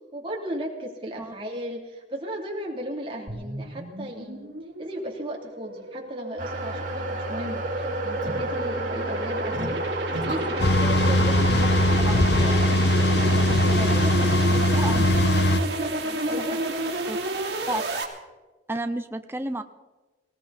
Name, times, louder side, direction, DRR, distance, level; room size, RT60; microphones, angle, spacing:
voice 1, 0.1-4.5 4.8-9.9 10.2-12.8 13.1-14.7 15.3-16.6, equal, 30° right, -1 dB, 3.1 m, -36 dB
sound 1, 3.3-18.0, right 1 dB, 70° right, 2.7 m, -30 dB
sound 2, 6.4-14.5, right 1 dB, 50° right, 3.9 m, -34 dB
sound 3, 10.6-15.6, left 1 dB, 65° left, 0.7 m, -21 dB
voice 2, 14.7-15.1 17.1-17.2 17.7-17.8 18.7-19.6, right 2 dB, 15° right, 7 dB, 0.6 m, -30 dB
19.5 x 18.0 x 4.2 m, 1.2 s
head